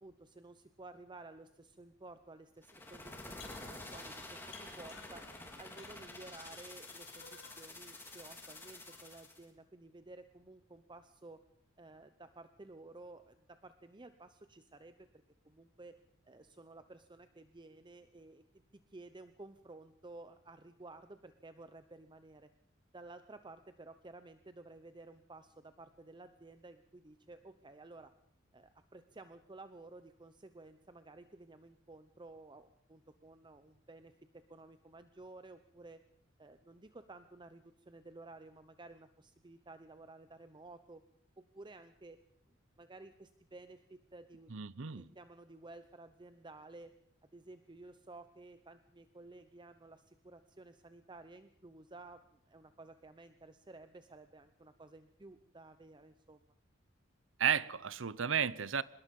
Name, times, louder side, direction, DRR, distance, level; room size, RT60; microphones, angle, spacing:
voice 1, 0.0-5.3 5.6-11.4 11.8-15.1 15.4-18.4 18.9-22.5 22.9-28.1 28.5-36.0 36.4-41.0 41.4-42.2 42.8-44.5 45.0-46.9 47.3-56.4, right 2 dB, 25° right, 10 dB, 0.8 m, -54 dB
sound 1, 2.6-9.4, left 2 dB, 10° left, 3.7 m, -49 dB
sound 2, 3.4-4.1 4.5-5.4 5.8-9.2, left 5 dB, 65° left, 5.5 m, -58 dB
voice 2, 44.5-45.1 57.4-58.8, right 8 dB, 65° right, 18 dB, 0.8 m, -33 dB
24.5 x 21.0 x 5.4 m, 0.71 s
head